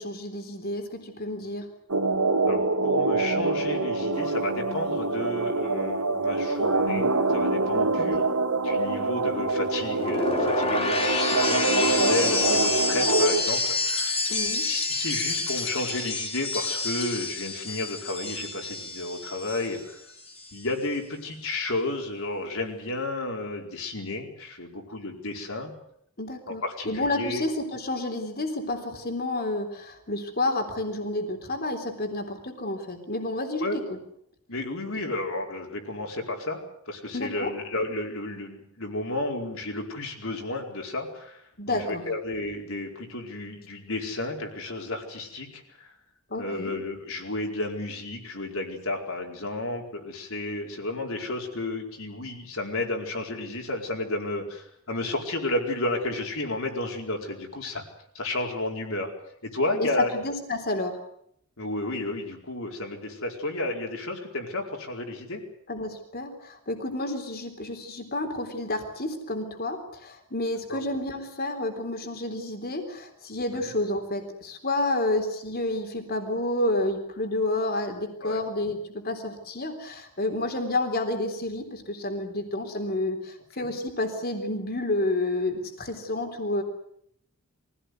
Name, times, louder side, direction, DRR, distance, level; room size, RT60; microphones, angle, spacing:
voice 1, 0.0-1.7 7.7-8.2 14.3-14.7 26.2-33.8 37.1-37.5 41.6-42.0 46.3-46.7 59.8-61.0 65.7-86.6, left 2 dB, 45° left, 5 dB, 3.8 m, -30 dB
sound 1, 1.9-13.4, right 3 dB, 85° right, 2.3 m, -25 dB
voice 2, 2.4-8.3 8.6-14.1 14.6-20.0 20.5-25.7 26.5-27.4 33.6-33.7 34.5-45.9 46.4-57.8 58.1-59.1 59.4-60.1 61.6-65.4 70.7-70.8 78.2-78.4 83.6-83.7, left 2 dB, 65° left, 2 dB, 4.7 m, -32 dB
sound 2, 9.8-19.9 20.2-20.6, left 3 dB, 25° left, 3.8 m, -28 dB
23.5 x 17.0 x 9.6 m, 0.73 s
head